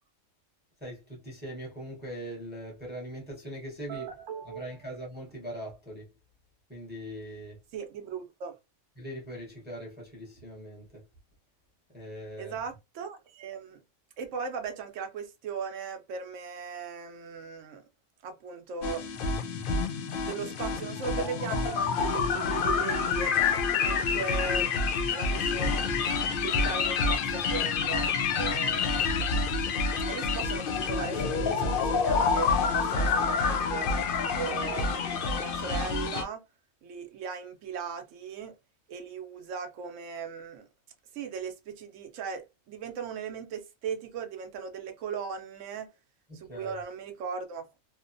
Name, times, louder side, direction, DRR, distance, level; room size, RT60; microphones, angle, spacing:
voice 1, 0.8-4.1 4.4-6.1 6.7-7.6 9.0-11.0 11.9-12.5 46.3-46.7, equal, 10° right, 0.7 m, -41 dB
voice 2, 3.9-4.7 7.7-8.5 12.4-13.8 14.2-17.8 18.2-19.1 20.2-24.7 25.1-26.0 26.4-29.4 30.1-33.9 34.2-36.4 36.8-38.5 38.9-40.7 41.1-45.9 46.3-47.6, right 6 dB, 70° right, 0.9 m, -38 dB
sound 1, 18.8-36.2, left 5 dB, 70° left, 0.5 m, -28 dB
2.9 x 2.1 x 2.5 m
omnidirectional pair, 1.4 m